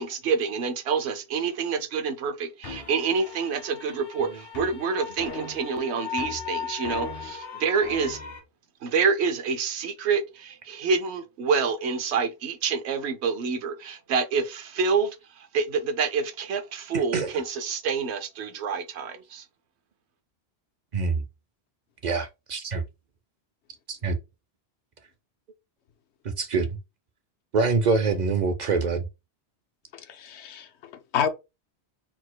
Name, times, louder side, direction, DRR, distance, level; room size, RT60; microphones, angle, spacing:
voice 1, 0.0-8.2 8.8-19.4, right 5 dB, 75° right, 0.9 m, -27 dB
sound 1, 2.6-8.4, left 6 dB, 60° left, 1.4 m, -37 dB
voice 2, 16.9-17.3 20.9-21.2 22.0-22.8 23.9-24.2 26.4-26.7 27.5-29.0, right 4 dB, 50° right, 0.6 m, -25 dB
voice 3, 29.9-31.3, left 8 dB, 80° left, 0.9 m, -30 dB
4.5 x 4.0 x 2.2 m
omnidirectional pair, 1.1 m